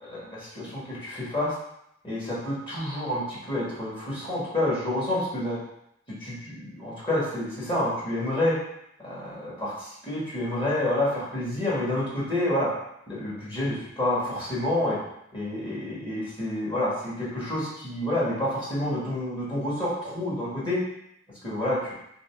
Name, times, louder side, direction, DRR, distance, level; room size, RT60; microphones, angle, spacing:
voice 1, 0.0-1.5 2.0-5.6 6.2-8.6 9.0-12.7 13.1-15.0 15.3-20.8 21.4-21.9, left 1 dB, 25° left, -7 dB, 1.7 m, -28 dB
4.0 x 3.3 x 3.5 m, 0.78 s
head